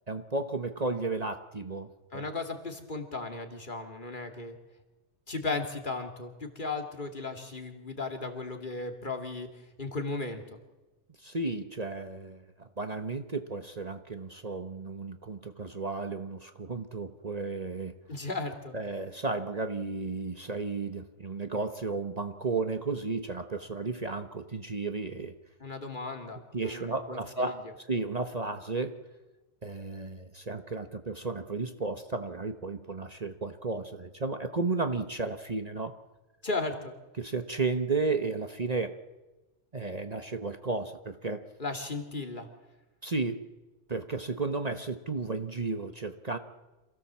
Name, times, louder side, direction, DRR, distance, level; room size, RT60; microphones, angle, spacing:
voice 1, 0.1-2.3 11.2-17.9 18.7-25.3 26.5-29.0 29.6-36.0 37.2-39.0 39.7-41.4 43.0-43.4 43.9-46.4, right 3 dB, 35° right, 7 dB, 1.2 m, -33 dB
voice 2, 2.1-4.6 5.3-9.5 9.8-10.6 18.1-18.7 25.6-27.5 36.4-36.9 41.6-42.5, left 3 dB, 45° left, 5 dB, 2.6 m, -36 dB
27.0 x 16.5 x 7.4 m, 1.1 s
omnidirectional pair, 1.2 m